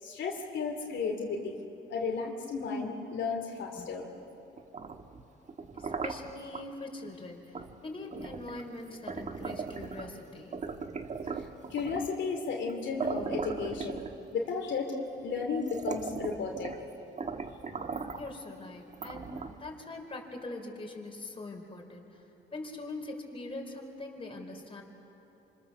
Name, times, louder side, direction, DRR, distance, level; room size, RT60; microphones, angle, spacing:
voice 1, 0.0-1.6 1.9-4.1 11.4-11.5 11.7-14.0 14.3-14.9 15.2-16.7, left 5 dB, 70° left, 1 dB, 2.7 m, -33 dB
voice 2, 3.8-4.1 5.7-10.6 18.1-22.2 22.5-24.8, left 2 dB, 25° left, 1 dB, 4.4 m, -43 dB
sound 1, 4.6-6.7 7.5-7.7 8.1-10.2 10.5-12.2 12.7-12.8 13.0-14.5 15.2-15.3 15.6-16.9 17.2-18.3 18.9-19.7, right 5 dB, 35° right, 1.4 m, -38 dB
26.5 x 26.0 x 7.0 m, 3.0 s
cardioid pair, 90°, 20 cm